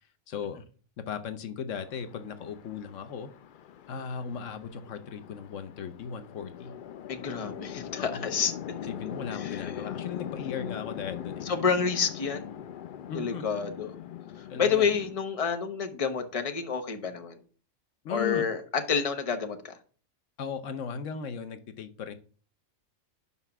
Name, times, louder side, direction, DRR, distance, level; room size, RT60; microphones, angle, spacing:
voice 1, 0.3-0.6 1.1-3.3 3.9-6.7 8.0-8.2 8.9-11.4 13.1-13.5 14.5-14.9 18.0-18.4 20.4-22.1, left 7 dB, 80° left, 1.1 m, -37 dB
Chatter / Traffic noise roadway noise / Train, 1.7-15.1, left 10 dB, 60° left, 0.5 m, -41 dB
voice 2, 7.1-8.5 9.3-9.7 11.4-12.5 13.1-13.9 14.4-17.4 18.1-19.8, left 6 dB, 30° left, 1.0 m, -29 dB
5.7 x 5.5 x 5.9 m
omnidirectional pair, 1.3 m